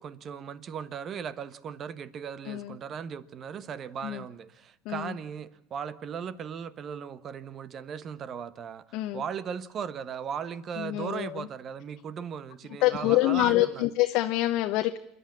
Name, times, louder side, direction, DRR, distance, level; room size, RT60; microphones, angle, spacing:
voice 1, 0.0-13.8, right 7 dB, 40° right, 1.2 m, -37 dB
voice 2, 2.5-2.8 4.0-4.2 4.8-5.2 8.9-9.2 10.8-11.5 12.8-15.0, left 16 dB, 60° left, 0.9 m, -26 dB
28.0 x 11.0 x 8.6 m
hypercardioid pair, 90°, 0 cm